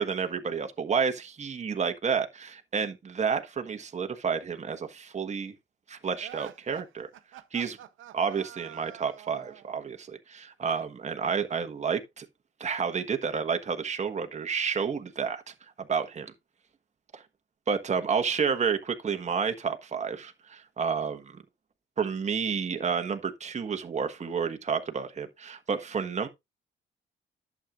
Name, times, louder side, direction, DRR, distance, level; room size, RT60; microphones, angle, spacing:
voice 1, 0.0-5.5 5.9-7.1 7.5-7.8 8.1-12.3 12.6-15.5 15.9-16.3 17.1-17.2 17.7-21.4 22.0-26.3, right 6 dB, 35° right, 1.3 m, -30 dB
sound 1, 6.2-9.7, right 12 dB, 80° right, 0.9 m, -46 dB
11.0 x 7.4 x 2.5 m
cardioid pair, 90°, 20 cm